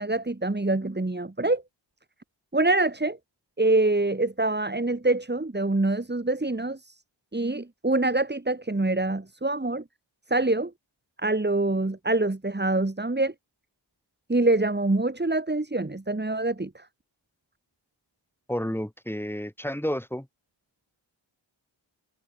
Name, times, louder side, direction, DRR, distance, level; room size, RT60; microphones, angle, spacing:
voice 1, 0.0-1.6 2.5-3.2 3.6-7.0 7.3-9.8 10.3-10.7 11.2-13.3 14.3-16.8, right 2 dB, 20° right, 3.5 m, -25 dB
voice 2, 18.5-20.3, equal, 5° left, 7.3 m, -30 dB
wide cardioid pair, 110°, 47 cm